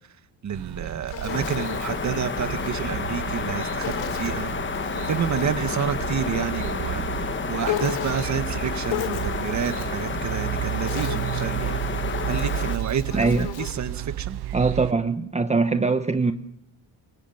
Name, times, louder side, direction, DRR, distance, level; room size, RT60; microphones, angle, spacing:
voice 1, 0.4-4.5 5.1-11.8 12.3-13.3 13.6-14.4, right 7 dB, 40° right, 10 dB, 1.9 m, -29 dB
sound 1, 0.5-14.9, right 14 dB, 65° right, 1.0 m, -32 dB
Insect, 0.6-2.8 3.8-5.9 7.6-8.5 8.9-10.0 10.7-13.9, left 11 dB, 85° left, 3.5 m, -36 dB
sound 2, 1.3-12.8, left 5 dB, 25° left, 1.4 m, -30 dB
voice 2, 13.1-13.5 14.5-16.3, right 4 dB, 15° right, 9 dB, 1.1 m, -22 dB
26.0 x 24.0 x 7.3 m, 0.75 s
cardioid pair, 115°, 42 cm